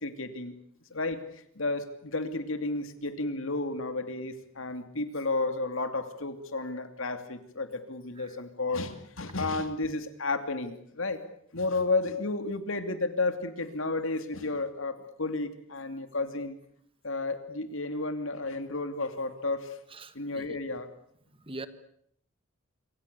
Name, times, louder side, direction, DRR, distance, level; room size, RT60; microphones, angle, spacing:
voice 1, 0.0-0.5 0.9-1.2 1.5-11.2 11.5-16.6 17.0-19.8 20.1-20.9, left 3 dB, 70° left, 9 dB, 2.7 m, -32 dB
voice 2, 19.9-20.5 21.4-21.7, right 2 dB, 25° right, 12 dB, 1.6 m, -42 dB
26.5 x 25.5 x 6.9 m, 0.69 s
head